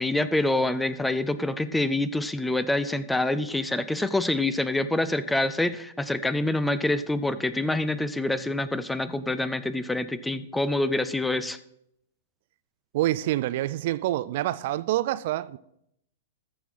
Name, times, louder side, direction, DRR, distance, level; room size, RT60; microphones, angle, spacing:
voice 1, 0.0-11.6, left 2 dB, 5° left, 0.5 m, -26 dB
voice 2, 12.9-15.6, right 15 dB, 50° right, 0.4 m, -27 dB
14.0 x 4.7 x 5.4 m
figure-of-eight pair, 110°, 0 cm